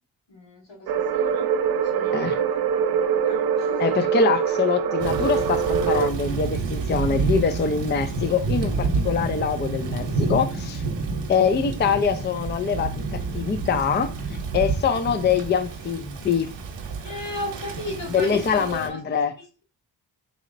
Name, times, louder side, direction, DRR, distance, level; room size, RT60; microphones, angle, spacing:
voice 1, 0.3-1.5 1.8-4.1 17.0-19.0, left 1 dB, 85° left, 1.8 m, -37 dB
sound 1, 0.9-6.1, right 7 dB, 60° right, 0.5 m, -23 dB
voice 2, 3.8-10.8 11.3-16.5 18.1-19.3, left 6 dB, 25° left, 0.4 m, -24 dB
Thunder / Rain, 5.0-18.9, right 4 dB, 85° right, 0.8 m, -29 dB
4.1 x 2.9 x 2.5 m
cardioid pair, 70°, 43 cm